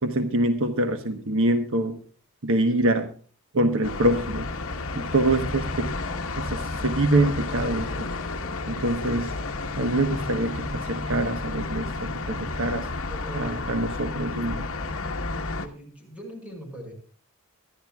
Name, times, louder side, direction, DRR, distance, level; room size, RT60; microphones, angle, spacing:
voice 1, 0.0-2.0 2.4-3.1 3.5-4.5 4.9-5.9 6.4-8.1 8.7-9.3 9.8-12.9 13.3-14.7, right 1 dB, 65° right, 8 dB, 1.1 m, -25 dB
sound 1, 3.8-15.7, left 3 dB, 65° left, 1.3 m, -31 dB
voice 2, 13.1-13.8 15.5-16.9, right 1 dB, 5° right, 2 dB, 5.4 m, -41 dB
24.0 x 11.0 x 2.3 m, 0.42 s
head